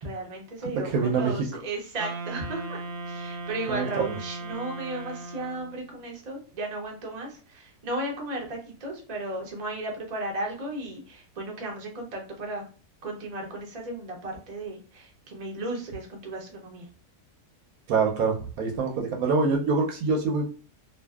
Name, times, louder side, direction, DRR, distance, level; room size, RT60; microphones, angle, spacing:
voice 1, 0.0-12.7 13.0-16.9, right 2 dB, 50° right, 0 dB, 0.5 m, -35 dB
voice 2, 0.8-1.4 3.7-4.1 17.9-20.5, right 4 dB, 70° right, 1 dB, 1.0 m, -25 dB
Wind instrument woodwind instrument, 2.0-5.9, right 2 dB, 90° right, 1.3 m, -37 dB
2.5 x 2.4 x 2.3 m, 0.37 s
omnidirectional pair, 1.7 m